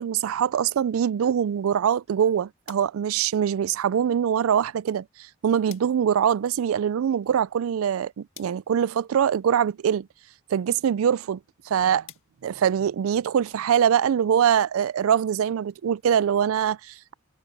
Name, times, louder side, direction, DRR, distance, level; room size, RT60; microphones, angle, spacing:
voice 1, 0.0-5.1 5.4-10.1 10.5-11.4 11.7-12.1 12.4-17.1, right 8 dB, 75° right, 0.3 m, -23 dB
sound 1, 2.6-13.4, left 13 dB, 65° left, 1.7 m, -56 dB
head